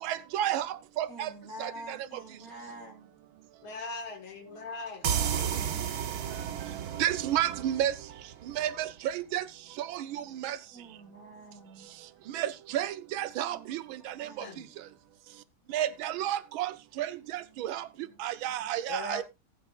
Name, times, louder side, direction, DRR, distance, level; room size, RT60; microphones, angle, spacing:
voice 1, 0.0-1.3 1.6-2.0 6.7-7.9 8.6-9.4 9.8-10.6 12.3-14.3 15.7-17.8 18.2-19.2, right 12 dB, 75° right, 1.6 m, -31 dB
voice 2, 1.1-3.1 4.3-4.6 10.7-11.9 13.5-13.7 14.0-14.6 18.0-18.2 18.6-18.8, right 1 dB, 45° left, 3.8 m, -48 dB
voice 3, 3.6-5.2 14.4-14.7 18.9-19.2, left 2 dB, 75° left, 2.4 m, -39 dB
sound 1, 5.0-8.6, right 8 dB, 55° right, 1.2 m, -33 dB
18.5 x 8.4 x 2.4 m
omnidirectional pair, 2.3 m